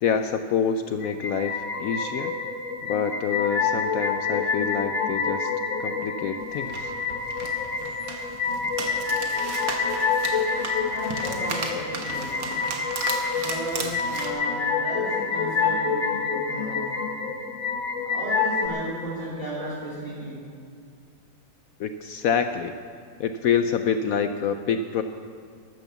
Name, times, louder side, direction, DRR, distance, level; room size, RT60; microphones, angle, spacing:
voice 1, 0.0-2.3 2.8-5.5 5.8-6.9 21.8-22.8 23.2-25.0, left 7 dB, 70° left, 8 dB, 0.9 m, -26 dB
sound 1, 1.0-18.7, left 5 dB, 45° left, 1.3 m, -27 dB
sound 2, 6.4-14.3, right 4 dB, 80° right, 2.0 m, -35 dB
voice 2, 10.8-12.6 13.3-16.8 18.0-20.4, right 1 dB, 20° right, -8 dB, 3.1 m, -35 dB
12.5 x 11.0 x 7.1 m, 2.3 s
omnidirectional pair, 1.9 m